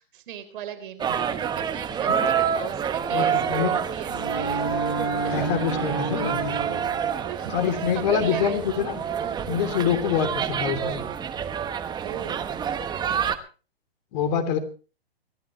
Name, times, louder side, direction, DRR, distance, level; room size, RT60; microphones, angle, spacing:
voice 1, 0.0-6.8 7.2-8.6 9.2-9.5 9.9-10.2 12.0-12.5, right 10 dB, 55° right, 9 dB, 3.8 m, -38 dB
sound 1, 1.0-13.4, right 8 dB, 15° right, 1.2 m, -28 dB
voice 2, 3.1-3.7 5.3-6.5 7.5-9.0 9.5-11.0 14.1-14.6, left 7 dB, 45° left, 8 dB, 3.1 m, -25 dB
Bowed string instrument, 4.0-7.2, right 1 dB, 70° left, 3.3 m, -32 dB
27.5 x 13.0 x 3.1 m, 0.36 s
hypercardioid pair, 125°, 31 cm